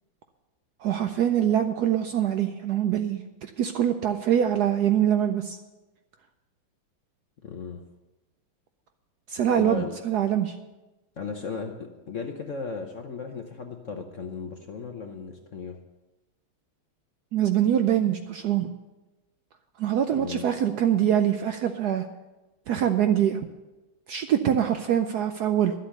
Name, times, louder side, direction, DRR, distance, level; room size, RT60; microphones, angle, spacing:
voice 1, 0.8-5.6 9.3-10.6 17.3-18.7 19.8-22.1 22.7-23.4 24.1-25.7, right 10 dB, 70° right, 7 dB, 1.0 m, -24 dB
voice 2, 7.4-7.8 9.6-9.9 11.2-15.8 20.1-20.5, left 5 dB, 55° left, 4 dB, 0.9 m, -36 dB
11.5 x 8.1 x 6.6 m, 1.1 s
omnidirectional pair, 2.2 m